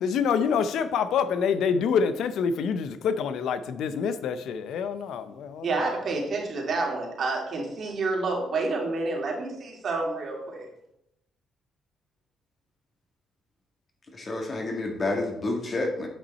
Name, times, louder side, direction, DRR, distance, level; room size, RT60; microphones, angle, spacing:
voice 1, 0.0-5.7, left 6 dB, 75° left, 12 dB, 0.6 m, -26 dB
voice 2, 5.6-10.7, right 3 dB, 55° right, -1 dB, 2.5 m, -29 dB
voice 3, 14.1-16.1, left 2 dB, 35° left, 2 dB, 1.7 m, -29 dB
8.6 x 5.4 x 4.1 m, 0.82 s
cardioid pair, 100°, 0 cm